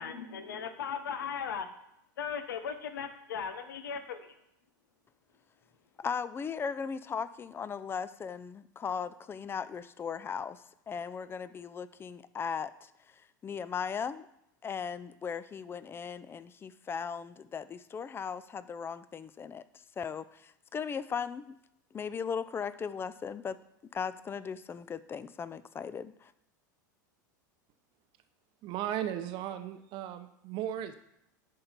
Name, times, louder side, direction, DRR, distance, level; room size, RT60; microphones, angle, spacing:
voice 1, 0.0-1.7 2.2-4.4, left 7 dB, 80° left, 9 dB, 0.9 m, -37 dB
voice 2, 6.0-12.9 13.4-14.3 14.6-19.6 20.0-21.6 21.9-23.6 23.9-26.3, left 6 dB, 20° left, 15 dB, 0.4 m, -37 dB
voice 3, 28.6-30.9, right 11 dB, 50° right, 10 dB, 0.8 m, -36 dB
11.0 x 3.8 x 4.4 m, 0.81 s
hypercardioid pair, 95°, 11 cm